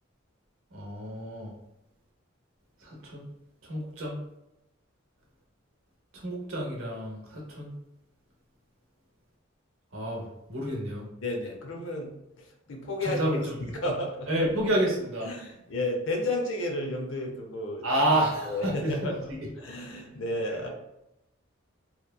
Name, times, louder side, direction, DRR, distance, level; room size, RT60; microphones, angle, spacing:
voice 1, 0.7-1.5 2.8-3.3 3.7-4.2 6.1-7.8 9.9-11.0 13.0-13.6 14.3-15.3 17.8-19.5, right 1 dB, 80° right, -2 dB, 0.8 m, -29 dB
voice 2, 11.2-12.1 12.7-13.2 13.6-14.3 15.2-17.8 18.4-19.3 19.6-20.7, left 1 dB, 70° left, 1 dB, 0.6 m, -32 dB
2.9 x 2.1 x 2.2 m, 0.88 s
head